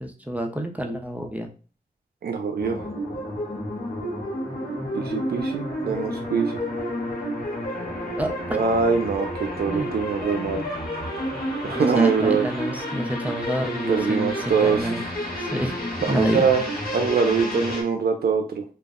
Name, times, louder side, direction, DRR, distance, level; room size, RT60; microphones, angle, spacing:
voice 1, 0.0-1.5 8.2-8.6 9.7-9.9 11.7-15.0 15.4-15.8 16.1-16.4, equal, 10° right, 4 dB, 0.4 m, -28 dB
voice 2, 2.2-2.9 4.9-6.6 8.5-10.7 11.6-12.5 13.9-15.0 16.0-16.6 16.9-18.6, right 5 dB, 85° right, 4 dB, 0.4 m, -23 dB
sound 1, 2.6-17.8, equal, 70° left, 1.0 m, -30 dB
2.4 x 2.0 x 3.5 m, 0.38 s
wide cardioid pair, 90°, 16 cm